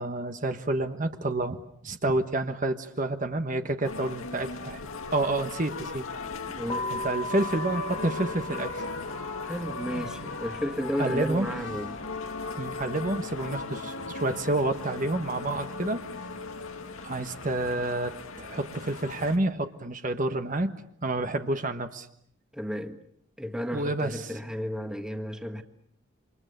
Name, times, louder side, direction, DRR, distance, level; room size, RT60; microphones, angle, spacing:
voice 1, 0.0-6.1 6.9-8.8 11.0-11.5 12.6-16.0 17.0-20.7 21.0-22.1 23.7-24.3, right 2 dB, 40° right, 1.4 m, -29 dB
sound 1, 3.8-19.4, left 3 dB, 85° left, 2.1 m, -37 dB
voice 2, 6.4-6.9 9.4-12.0 22.5-23.0 23.4-25.6, equal, 5° right, 1.6 m, -33 dB
sound 2, 6.7-13.7, left 2 dB, 25° left, 1.2 m, -40 dB
29.0 x 26.0 x 6.8 m
head